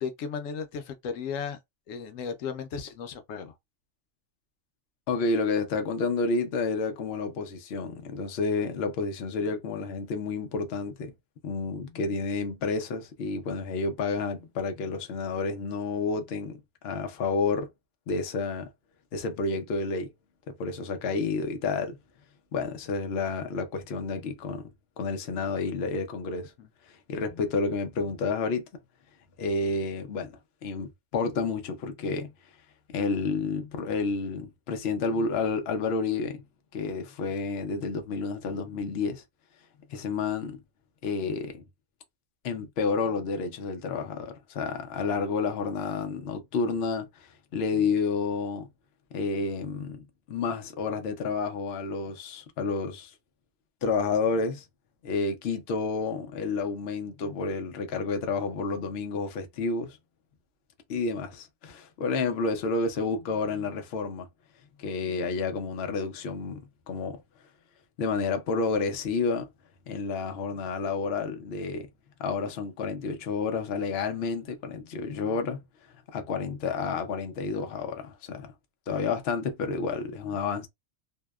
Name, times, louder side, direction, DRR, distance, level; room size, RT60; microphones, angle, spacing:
voice 1, 0.0-1.6 1.9-3.5 26.6-26.7, left 6 dB, 85° left, 1.0 m, -35 dB
voice 2, 5.1-11.1 11.4-16.6 16.8-17.7 18.1-18.7 19.1-20.1 20.5-22.0 22.5-24.6 25.0-26.5 27.1-28.7 29.4-32.3 32.9-36.4 36.7-39.2 39.9-40.6 41.0-41.6 42.4-48.7 49.1-53.1 53.8-54.6 55.0-60.0 60.9-64.3 64.8-66.6 66.9-67.2 68.0-69.5 69.9-71.9 72.2-75.6 76.1-78.5 78.9-80.7, left 4 dB, 60° left, 0.8 m, -30 dB
2.7 x 2.0 x 2.2 m
omnidirectional pair, 1.3 m